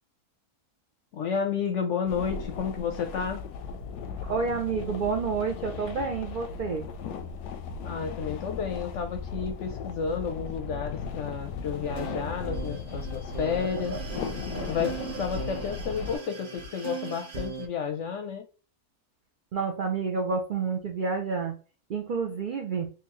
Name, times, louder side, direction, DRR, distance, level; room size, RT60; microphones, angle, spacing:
voice 1, 1.1-3.4 7.8-14.0 14.7-18.5, left 6 dB, 65° left, 0.8 m, -31 dB
sound 1, 2.1-16.2, left 5 dB, 85° left, 1.1 m, -37 dB
voice 2, 4.2-6.9 19.5-21.5 21.9-22.9, right 5 dB, 75° right, 0.4 m, -29 dB
sound 2, 11.7-17.7, right 3 dB, 40° right, 0.8 m, -37 dB
3.7 x 2.7 x 2.9 m
omnidirectional pair, 1.6 m